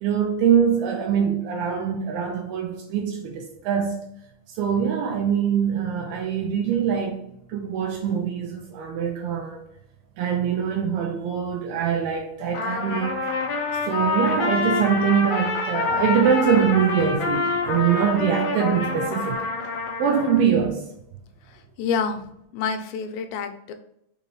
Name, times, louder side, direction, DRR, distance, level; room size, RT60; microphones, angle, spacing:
voice 1, 0.0-4.0 4.5-7.2 7.5-9.6 10.2-13.3 13.9-19.5 20.0-20.8, right 7 dB, 85° right, 2.3 m, -23 dB
Trumpet, 12.5-20.4, left 3 dB, 70° left, 1.9 m, -26 dB
voice 2, 21.5-23.7, left 6 dB, 90° left, 2.7 m, -28 dB
6.4 x 2.7 x 2.9 m
omnidirectional pair, 4.7 m